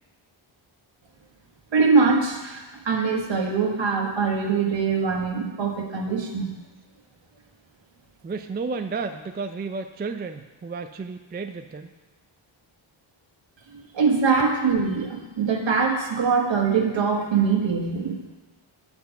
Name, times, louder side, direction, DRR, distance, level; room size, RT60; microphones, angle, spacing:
voice 1, 1.7-6.5 13.7-18.2, right 5 dB, 65° right, 2 dB, 1.5 m, -23 dB
voice 2, 8.2-11.9, right 4 dB, 25° right, 7 dB, 0.3 m, -32 dB
9.6 x 4.5 x 6.9 m, 1.2 s
wide cardioid pair, 125°, 49 cm